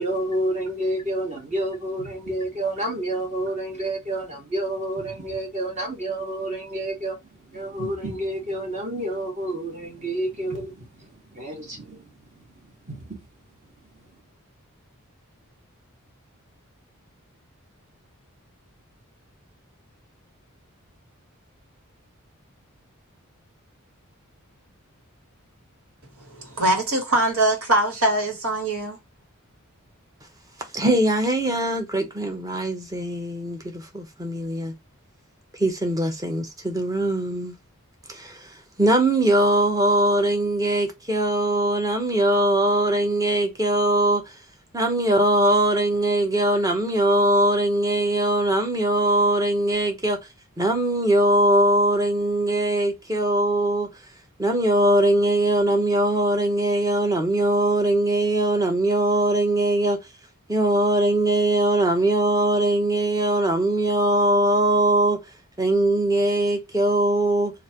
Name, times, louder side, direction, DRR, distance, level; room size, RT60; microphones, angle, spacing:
voice 1, 0.0-12.4 12.9-13.2, right 1 dB, 35° right, 1.3 m, -29 dB
voice 2, 26.2-29.0, right 1 dB, 75° right, 1.7 m, -22 dB
voice 3, 30.7-34.7 35.6-37.5 38.1-44.3 44.7-50.2 50.6-53.9 54.4-60.0 60.5-65.2 65.6-67.5, right 1 dB, 15° right, 0.9 m, -21 dB
3.2 x 2.5 x 4.3 m
head